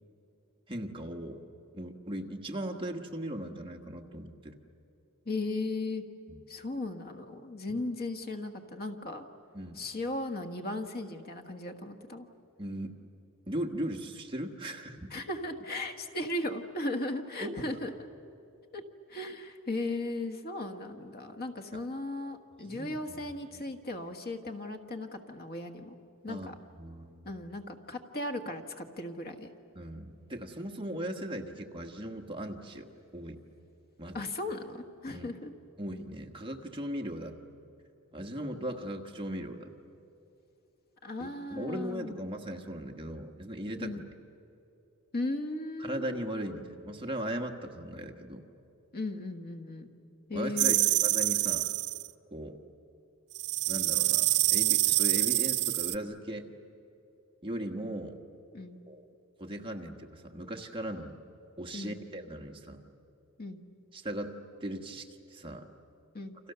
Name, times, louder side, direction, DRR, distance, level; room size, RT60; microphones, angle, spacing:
voice 1, 0.7-1.4 1.7-4.6 9.5-9.8 12.6-12.9 13.5-15.1 17.4-17.6 22.6-23.0 26.3-26.5 26.8-27.3 29.7-33.4 34.0-34.2 35.1-35.3 35.8-37.3 38.1-39.7 41.2-43.9 45.8-48.4 50.3-51.7 52.3-52.6 53.7-56.5 57.4-58.2 58.9-59.0 59.4-61.1 61.6-62.8 63.9-64.3 64.6-65.7, right 1 dB, 25° right, 3 dB, 1.4 m, -38 dB
voice 2, 5.2-6.0 6.5-9.2 9.7-12.3 15.1-18.1 18.7-18.8 19.1-25.9 26.2-26.5 27.2-29.5 34.1-35.5 41.0-42.2 43.8-44.0 45.1-46.1 48.9-49.9 50.3-50.9 58.5-58.8 61.7-62.0 63.4-63.6 66.1-66.4, left 2 dB, 45° left, 5 dB, 1.5 m, -36 dB
sound 1, 50.6-52.1 53.3-55.9, right 17 dB, 80° right, 0.6 m, -26 dB
29.5 x 26.5 x 6.9 m, 2.8 s
head